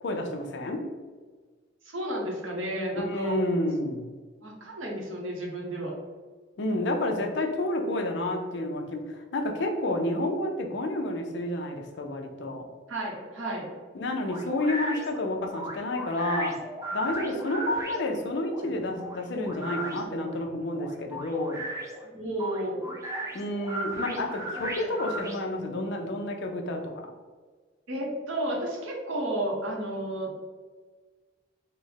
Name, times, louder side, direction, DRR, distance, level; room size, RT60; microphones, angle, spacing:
voice 1, 0.0-0.9 3.0-4.1 6.6-12.7 13.9-16.6 16.9-21.6 23.3-27.1, left 1 dB, 60° left, 4 dB, 0.5 m, -30 dB
voice 2, 1.8-3.4 4.4-5.9 12.9-13.6 17.2-17.4 22.2-22.9 24.0-24.2 24.5-24.6 27.9-30.4, right 1 dB, 85° right, -1 dB, 0.8 m, -32 dB
sound 1, 14.3-25.7, right 1 dB, 15° right, 0.5 m, -37 dB
3.2 x 2.0 x 3.9 m, 1.4 s
head